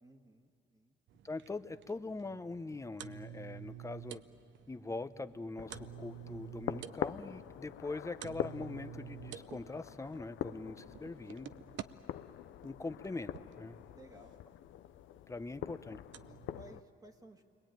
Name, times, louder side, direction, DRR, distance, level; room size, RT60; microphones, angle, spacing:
voice 1, 0.0-1.0 12.4-12.8 13.9-14.4 16.3-17.4, right 1 dB, 20° right, 3 dB, 1.6 m, -58 dB
sound 1, 1.1-11.8 12.6-13.5 14.8-14.9 15.3-15.4 16.1-16.8, right 12 dB, 70° right, 0.7 m, -50 dB
voice 2, 1.2-4.2 4.7-11.5 12.6-13.8 15.3-16.0, left 3 dB, 15° left, 10 dB, 0.8 m, -42 dB
sound 2, 5.6-16.8, left 12 dB, 75° left, 0.6 m, -44 dB
29.0 x 22.0 x 9.1 m, 2.4 s
cardioid pair, 90°, 20 cm